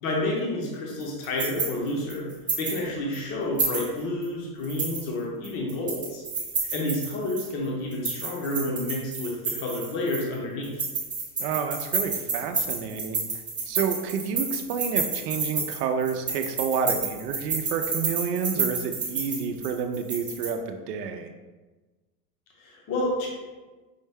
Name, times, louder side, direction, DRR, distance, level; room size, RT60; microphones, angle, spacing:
voice 1, 0.0-2.3 2.6-6.2 6.7-10.8 22.6-23.3, left 1 dB, 30° left, -2 dB, 0.7 m, -30 dB
sound 1, 1.0-2.8 3.1-3.2 3.6-4.2 4.6-7.5 7.9-10.3 10.6-20.5, right 4 dB, 10° right, 0.4 m, -30 dB
voice 2, 11.4-13.3 13.7-21.3, right 6 dB, 75° right, 6 dB, 0.6 m, -29 dB
5.5 x 2.1 x 3.4 m, 1.3 s
supercardioid pair, 155°, 48 cm